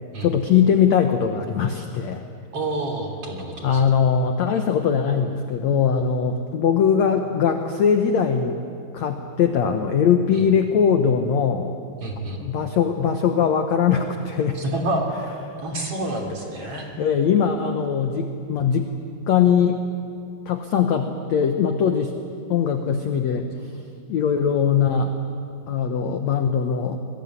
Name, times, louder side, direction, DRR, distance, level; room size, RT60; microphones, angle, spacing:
voice 1, 0.2-2.2 3.6-8.6 8.9-11.7 12.4-14.6 16.6-18.9 19.3-19.8 20.5-22.2 22.5-23.7 24.1-25.1 25.7-27.0, left 7 dB, 65° left, 6 dB, 1.8 m, -21 dB
voice 2, 2.5-3.8 10.3-10.4 12.0-12.4 14.6-15.0 15.6-16.9, right 1 dB, 40° right, 2 dB, 3.6 m, -28 dB
26.5 x 21.0 x 9.7 m, 2.4 s
omnidirectional pair, 4.6 m